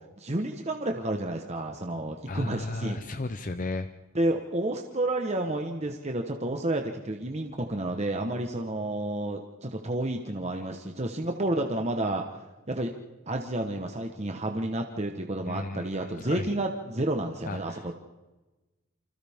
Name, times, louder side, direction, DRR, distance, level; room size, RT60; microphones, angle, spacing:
voice 1, 0.2-3.0 4.1-12.2 12.7-12.9 13.3-18.0, right 1 dB, 30° right, 3 dB, 1.2 m, -30 dB
voice 2, 2.3-3.9 15.5-16.5 17.5-17.8, left 2 dB, 40° left, 9 dB, 0.6 m, -34 dB
28.5 x 25.5 x 3.6 m, 1.1 s
head